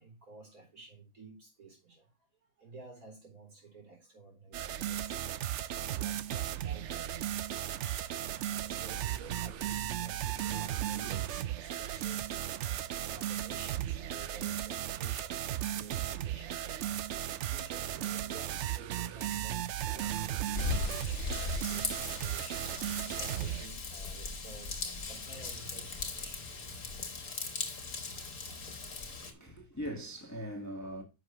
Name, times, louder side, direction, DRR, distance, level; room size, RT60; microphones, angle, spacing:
voice 1, 0.0-2.1 2.6-5.4 5.7-7.4 8.0-12.2 12.6-22.6 23.2-26.6 29.3-29.6, right 3 dB, 55° right, 4.5 m, -53 dB
sound 1, 4.5-23.7, right 11 dB, 85° right, 0.6 m, -36 dB
Raindrop / Vehicle horn car horn honking / Trickle dribble, 20.5-29.3, left 4 dB, 60° left, 2.0 m, -38 dB
voice 2, 29.1-31.0, equal, 10° left, 1.7 m, -41 dB
10.5 x 6.6 x 3.1 m
omnidirectional pair, 1.8 m